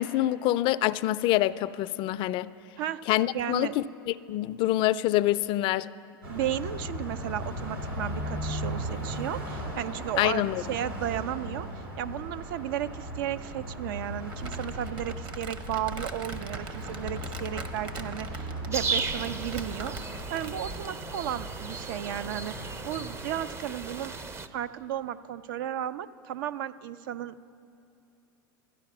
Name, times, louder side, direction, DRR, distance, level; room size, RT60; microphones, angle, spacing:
voice 1, 0.0-2.5 3.1-5.9 10.2-10.6, left 15 dB, 45° left, 15 dB, 0.3 m, -26 dB
voice 2, 3.3-3.8 6.3-10.4 10.7-11.7 12.0-20.0 20.3-24.1 24.5-27.4, right 11 dB, 70° right, 14 dB, 0.4 m, -34 dB
Car passing by, 6.2-23.4, equal, 90° right, 2.9 m, -38 dB
Crumpling crinkling, 14.3-20.9, right 3 dB, 40° right, 1.0 m, -41 dB
sound 1, 18.7-24.5, right 4 dB, 20° right, 0.5 m, -36 dB
13.0 x 10.0 x 5.9 m, 2.7 s
hypercardioid pair, 105°, 12 cm